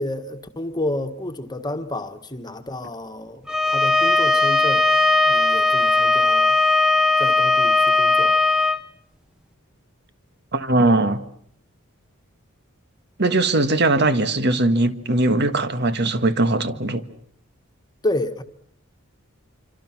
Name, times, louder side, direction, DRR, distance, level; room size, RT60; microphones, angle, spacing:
voice 1, 0.0-4.9 5.2-6.6 7.2-8.4 18.0-18.4, left 1 dB, 20° left, 1.6 m, -30 dB
Bowed string instrument, 3.5-8.8, left 3 dB, 5° right, 1.0 m, -18 dB
voice 2, 10.5-11.2 13.2-17.0, right 2 dB, 50° right, 1.6 m, -20 dB
27.0 x 25.5 x 6.0 m
head